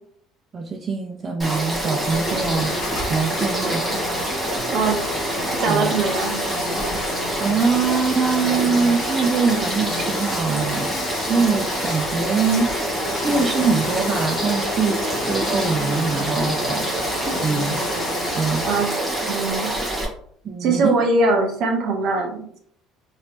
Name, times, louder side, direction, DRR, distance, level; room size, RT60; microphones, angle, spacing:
voice 1, 0.5-2.7 3.1-3.8 5.7-5.9 7.4-10.9 11.2-16.9 17.4-17.8 18.4-18.6 20.4-21.0, right 5 dB, 30° right, 3 dB, 0.4 m, -23 dB
Frog / Stream, 1.4-20.0, right 1 dB, 10° right, 1.3 m, -26 dB
sound 1, 2.0-18.8, left 4 dB, 90° left, 0.6 m, -32 dB
voice 2, 4.7-5.0 5.6-6.4 18.7-18.9 19.3-19.7 20.6-22.6, right 3 dB, 55° right, 2 dB, 0.9 m, -21 dB
3.1 x 3.0 x 2.9 m, 0.64 s
cardioid pair, 130°, 0 cm